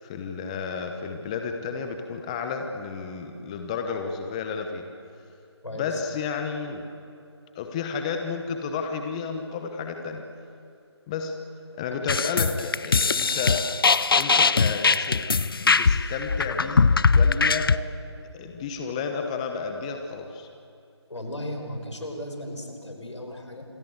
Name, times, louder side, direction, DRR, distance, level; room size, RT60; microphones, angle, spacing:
voice 1, 0.0-4.8 5.7-6.8 7.5-10.2 11.1-11.3 11.7-13.6 14.1-15.2 15.6-17.8 18.3-20.5, left 5 dB, 15° left, 5 dB, 1.0 m, -32 dB
voice 2, 5.6-6.0 21.1-23.7, left 1 dB, 90° left, 4 dB, 5.2 m, -36 dB
sound 1, 12.1-17.8, left 4 dB, 55° left, 0.7 m, -21 dB
27.0 x 20.5 x 8.0 m, 2.6 s
figure-of-eight pair, 165°, 15 cm